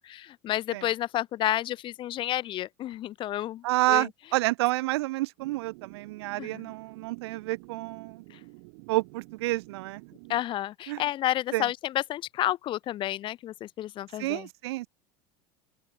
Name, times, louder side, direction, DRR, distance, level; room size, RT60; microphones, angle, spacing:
voice 1, 0.0-4.1 6.4-6.7 8.3-8.4 10.3-14.5, left 13 dB, 40° left, 1.7 m, -31 dB
voice 2, 3.6-8.2 8.9-10.0 10.9-11.0 11.5-11.7 14.2-14.9, right 19 dB, 90° right, 0.9 m, -29 dB
sound 1, 5.4-10.4, right 33 dB, 70° right, 5.6 m, -49 dB
open air
supercardioid pair, 145°, 13 cm